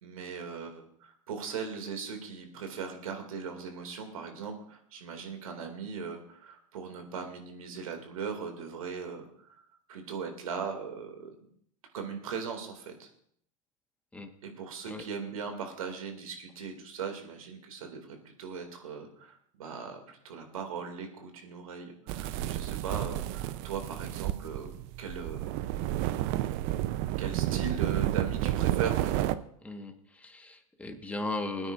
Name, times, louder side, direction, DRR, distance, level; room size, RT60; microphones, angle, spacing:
voice 1, 0.0-11.3 11.9-13.1 14.4-24.7 25.0-25.5 27.2-29.3, right 6 dB, 85° right, 5 dB, 2.4 m, -39 dB
sound 1, 22.1-29.4, right 14 dB, 55° right, 0.6 m, -31 dB
voice 2, 29.6-31.7, left 2 dB, 10° left, 4 dB, 1.4 m, -37 dB
21.5 x 9.7 x 2.5 m, 0.66 s
hypercardioid pair, 100°, 17 cm